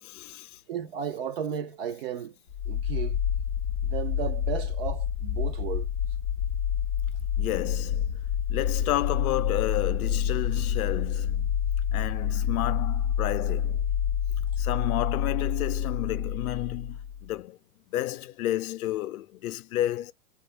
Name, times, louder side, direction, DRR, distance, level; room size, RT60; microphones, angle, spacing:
voice 1, 0.0-0.6 7.4-8.2 8.5-11.5 11.9-13.8 14.6-17.6 17.9-20.1, left 14 dB, 65° left, 0.6 m, -31 dB
voice 2, 0.7-2.3 2.7-3.2 3.8-5.9, right 8 dB, 40° right, 0.5 m, -34 dB
sound 1, 2.5-17.3, left 8 dB, 10° left, 0.3 m, -28 dB
3.5 x 2.4 x 2.7 m
hypercardioid pair, 155°, 47 cm